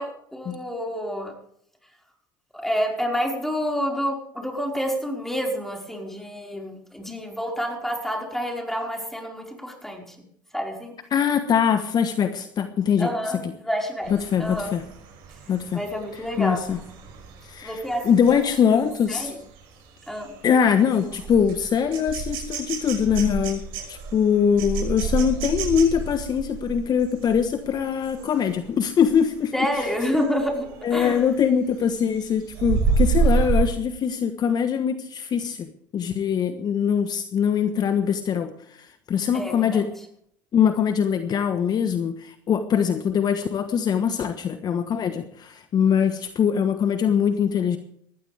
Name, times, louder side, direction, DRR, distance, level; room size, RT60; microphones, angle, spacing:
voice 1, 0.0-1.3 2.5-10.2 10.5-10.9 13.0-14.1 14.4-14.7 15.7-16.8 17.6-18.4 19.1-19.4 20.1-20.4 29.5-31.2 39.3-39.9, equal, 5° left, 1 dB, 5.1 m, -28 dB
voice 2, 11.1-13.5 14.1-14.8 15.5-15.8 16.4-16.8 17.4-19.3 20.4-29.9 30.8-39.9 40.5-47.8, left 7 dB, 40° left, 9 dB, 1.2 m, -23 dB
sound 1, 14.0-28.6 29.0-29.3 29.6-31.3 31.7-33.7, right 5 dB, 65° right, 6.2 m, -29 dB
20.0 x 14.5 x 3.5 m, 0.67 s
hypercardioid pair, 70°, 10 cm